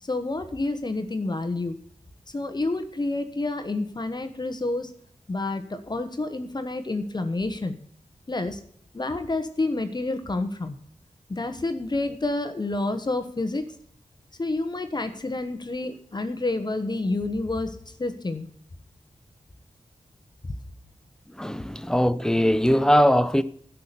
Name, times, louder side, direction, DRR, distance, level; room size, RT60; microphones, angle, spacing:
voice 1, 0.0-1.8 2.3-4.9 5.3-7.8 8.3-8.6 8.9-10.8 11.3-13.6 14.4-18.5 20.4-20.5, left 2 dB, 35° left, 1.1 m, -29 dB
voice 2, 21.3-23.4, equal, 5° left, 0.6 m, -21 dB
12.0 x 5.8 x 6.8 m
wide cardioid pair, 80°, 12 cm